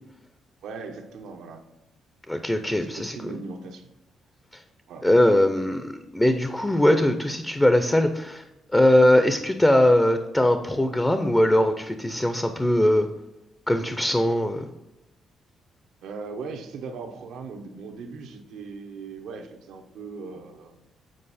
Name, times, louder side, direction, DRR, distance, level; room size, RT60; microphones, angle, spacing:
voice 1, 0.6-1.6 2.6-3.9 4.9-5.0 16.0-20.7, right 4 dB, 80° right, 4 dB, 0.9 m, -39 dB
voice 2, 2.3-3.2 5.0-8.4 8.7-13.1 13.7-14.7, left 1 dB, 10° left, 8 dB, 0.5 m, -21 dB
7.6 x 4.6 x 4.1 m, 0.93 s
cardioid pair, 90°, 0 cm